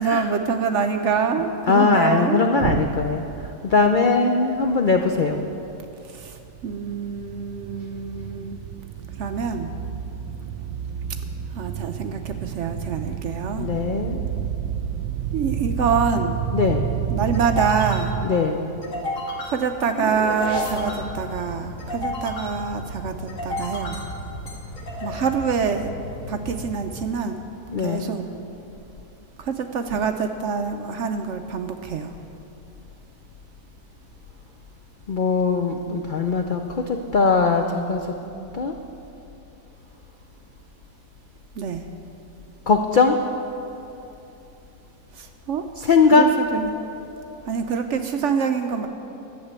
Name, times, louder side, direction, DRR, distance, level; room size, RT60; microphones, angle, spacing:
voice 1, 0.0-2.9 6.1-8.6 9.2-9.7 11.5-13.7 15.3-16.4 17.1-18.1 19.4-24.0 25.0-25.9 26.3-27.4 27.8-28.3 29.4-32.1 41.6-41.8 45.1-45.7 46.1-46.7 47.5-48.9, right 6 dB, 65° right, 7 dB, 0.8 m, -26 dB
voice 2, 1.7-3.2 3.6-5.4 13.1-13.2 13.6-14.2 16.5-16.9 18.2-18.7 27.7-28.2 35.1-38.0 38.5-38.7 42.7-43.2 45.8-46.3, left 4 dB, 75° left, 4 dB, 0.4 m, -20 dB
sound 1, 4.9-18.3, right 9 dB, 85° right, 1.1 m, -30 dB
sound 2, 15.2-27.7, left 1 dB, 55° left, 2.2 m, -33 dB
12.0 x 7.3 x 8.1 m, 2.8 s
omnidirectional pair, 1.7 m